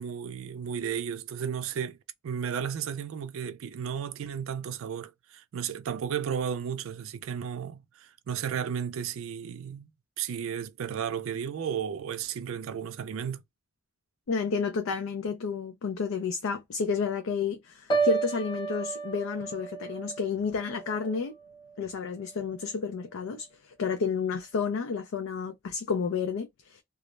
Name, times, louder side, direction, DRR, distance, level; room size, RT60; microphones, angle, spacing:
voice 1, 0.0-2.0 2.2-9.9 10.2-13.4, right 8 dB, 85° right, 0.4 m, -34 dB
voice 2, 14.3-21.3 21.8-26.8, left 5 dB, 85° left, 0.4 m, -31 dB
Piano, 17.9-21.9 22.2-22.6, right 5 dB, 20° left, 0.6 m, -33 dB
2.3 x 2.0 x 3.0 m
head